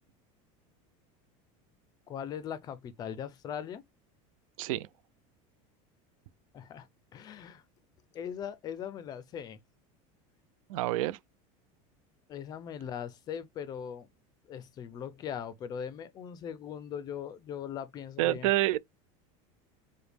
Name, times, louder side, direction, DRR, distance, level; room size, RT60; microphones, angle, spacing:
voice 1, 2.1-3.8 6.5-6.9 7.1-7.6 8.1-9.6 12.3-14.1 14.5-18.5, left 8 dB, 25° left, 0.4 m, -40 dB
voice 2, 10.7-11.2 18.2-18.8, right 16 dB, 90° right, 0.4 m, -27 dB
4.9 x 2.1 x 3.2 m
cardioid pair, 170°, 17 cm